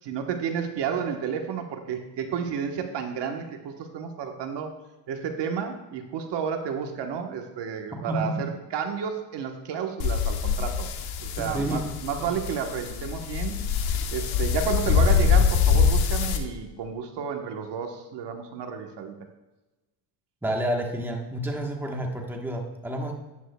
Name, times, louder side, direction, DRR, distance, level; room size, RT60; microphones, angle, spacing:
voice 1, 0.0-4.7 5.1-10.9 11.2-13.6 14.1-19.1, right 7 dB, 55° right, 4 dB, 1.3 m, -31 dB
voice 2, 8.1-8.5 11.4-11.9 12.2-12.3 20.4-23.1, right 1 dB, 5° right, 1 dB, 1.2 m, -29 dB
sound 1, 10.0-16.4, left 6 dB, 80° left, 1.2 m, -24 dB
11.0 x 9.5 x 2.3 m, 1.1 s
cardioid pair, 110°, 49 cm